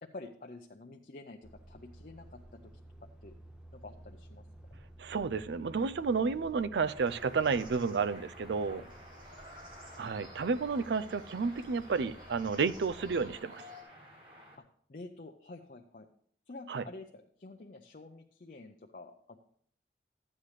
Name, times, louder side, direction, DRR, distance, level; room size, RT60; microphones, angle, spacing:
voice 1, 0.0-2.7 3.2-3.4 3.7-4.5 8.7-8.9 14.9-16.1 16.5-19.4, left 2 dB, 45° left, 3 dB, 0.6 m, -49 dB
Truck, 1.4-13.4, right 1 dB, 5° right, 0.6 m, -54 dB
voice 2, 5.0-8.8 10.0-13.6 16.7-16.8, right 5 dB, 75° right, 15 dB, 0.4 m, -31 dB
sound 1, 6.7-14.6, equal, 30° right, 1.7 m, -55 dB
sound 2, 7.0-13.8, equal, 50° right, 3.1 m, -54 dB
13.0 x 8.7 x 3.2 m, 0.62 s
head